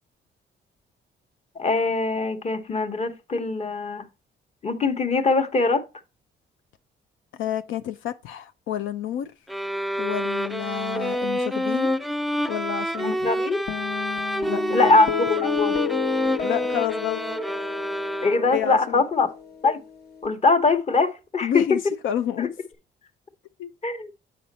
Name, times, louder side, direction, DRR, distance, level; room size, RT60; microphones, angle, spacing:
voice 1, 1.5-4.1 4.6-5.8 13.0-13.6 14.7-15.1 15.4-15.8 18.2-19.3 19.6-19.8 20.2-21.5 22.4-22.5 23.8-24.1, left 3 dB, 35° left, 1.1 m, -22 dB
voice 2, 7.4-9.3 10.0-12.0 12.5-13.3 14.5-15.0 16.4-17.2 18.5-19.0 21.4-22.5 23.6-23.7, left 10 dB, 85° left, 0.5 m, -29 dB
sound 1, 9.5-18.7, equal, ahead, 0.3 m, -27 dB
sound 2, 13.7-20.3, left 9 dB, 55° left, 0.9 m, -32 dB
7.1 x 5.3 x 4.1 m
cardioid pair, 90°, 20 cm